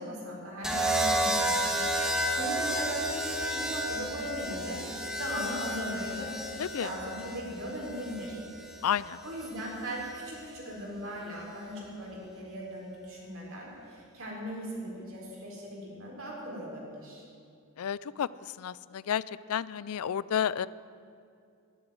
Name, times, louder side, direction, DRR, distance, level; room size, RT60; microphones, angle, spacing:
voice 1, 0.0-6.3 6.7-8.4 9.2-17.2, equal, 65° right, -3 dB, 4.4 m, -39 dB
sound 1, 0.6-8.8 10.0-10.4, right 1 dB, 5° right, 1.3 m, -31 dB
voice 2, 8.8-9.2 17.8-18.3 18.6-19.2 19.5-20.7, left 9 dB, 75° left, 19 dB, 0.4 m, -30 dB
11.0 x 11.0 x 9.2 m, 2.4 s
head